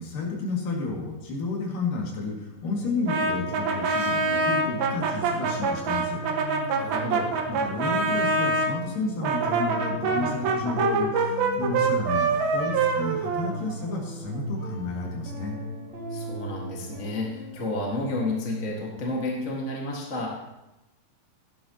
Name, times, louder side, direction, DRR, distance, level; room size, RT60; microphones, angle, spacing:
voice 1, 0.0-6.2 7.5-15.6, left 3 dB, 65° left, -2 dB, 3.8 m, -32 dB
sound 1, 2.4-19.0, equal, 55° right, 6.0 m, -38 dB
Brass instrument, 3.1-8.7 9.2-14.0, right 4 dB, 90° right, 3.2 m, -25 dB
voice 2, 6.8-7.3 16.1-20.4, left 2 dB, 30° left, -3 dB, 1.4 m, -31 dB
16.5 x 12.0 x 2.9 m, 0.98 s
omnidirectional pair, 4.2 m